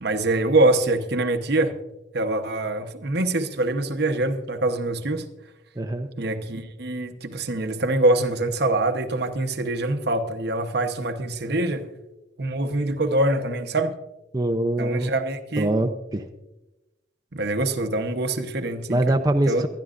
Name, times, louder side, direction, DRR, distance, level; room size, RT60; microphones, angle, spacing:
voice 1, 0.0-1.8 2.1-5.3 6.2-11.9 12.4-13.9 14.8-15.7 17.3-19.2 19.5-19.7, right 2 dB, 60° right, 7 dB, 1.0 m, -24 dB
voice 2, 5.8-6.1 14.3-15.1 15.6-16.2 18.9-19.7, right 1 dB, 20° right, 4 dB, 0.6 m, -23 dB
23.5 x 11.0 x 2.5 m, 0.98 s
head